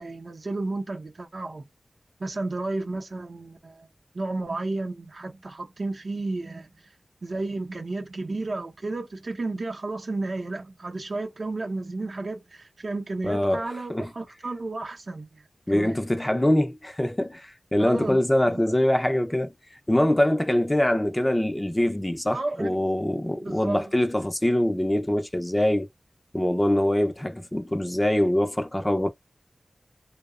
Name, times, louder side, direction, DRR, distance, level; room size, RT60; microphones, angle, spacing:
voice 1, 0.0-1.6 2.2-3.9 4.1-6.7 7.2-15.3 15.7-16.0 17.8-18.2 18.5-18.7 22.3-22.8 23.4-23.9, right 2 dB, 65° right, 0.6 m, -32 dB
voice 2, 13.2-14.1 15.7-19.5 19.9-25.9 26.3-29.1, left 1 dB, 15° left, 0.4 m, -24 dB
2.7 x 2.0 x 2.4 m
wide cardioid pair, 85°, 0 cm